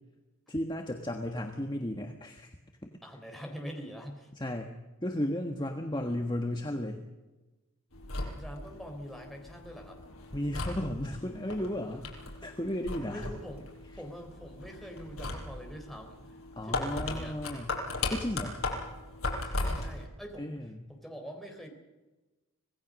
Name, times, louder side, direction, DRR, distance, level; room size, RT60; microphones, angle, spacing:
voice 1, 0.5-2.6 2.8-2.9 4.3-4.7 5.0-7.0 10.3-12.1 12.4-13.3 16.5-17.8 18.1-18.6 20.4-20.9, left 1 dB, 20° left, 3 dB, 1.4 m, -34 dB
voice 2, 3.0-4.3 8.3-10.0 13.0-13.7 13.9-16.4 16.6-17.4 19.4-20.5 20.9-21.7, equal, ahead, 2 dB, 3.8 m, -44 dB
sound 1, 7.9-20.0, left 2 dB, 75° left, 5.2 m, -38 dB
26.0 x 18.0 x 6.4 m, 1.1 s
head